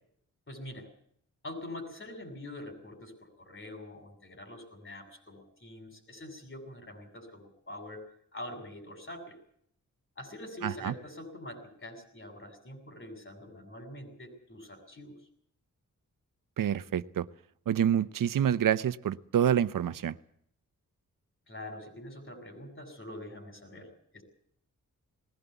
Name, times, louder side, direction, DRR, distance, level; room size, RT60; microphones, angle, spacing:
voice 1, 0.5-0.9 1.4-9.4 10.2-15.2 21.5-24.2, left 1 dB, 40° left, 6 dB, 7.2 m, -45 dB
voice 2, 10.6-10.9 16.6-17.3 17.7-20.2, right 9 dB, 85° right, 14 dB, 0.8 m, -27 dB
20.0 x 16.5 x 8.1 m, 0.68 s
cardioid pair, 80°, 32 cm